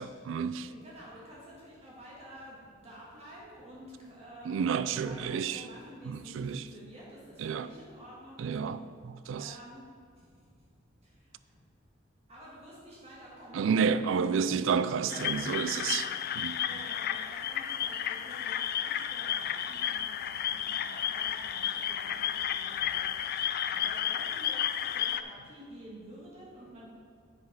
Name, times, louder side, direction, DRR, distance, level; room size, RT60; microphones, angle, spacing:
voice 1, 0.0-0.7 4.5-5.6 6.1-6.6 7.4-7.7 8.4-9.5 13.5-16.1 16.4-16.6, right 6 dB, 70° right, 0.3 m, -30 dB
voice 2, 0.7-8.9 9.4-9.9 10.2-10.5 11.0-11.3 12.3-13.7 14.0-14.1 14.4-14.7 15.1-15.8 16.6-26.9, equal, 35° right, 1.5 m, -50 dB
sound 1, 15.1-25.2, left 10 dB, 50° left, 0.3 m, -32 dB
7.8 x 5.2 x 5.9 m
head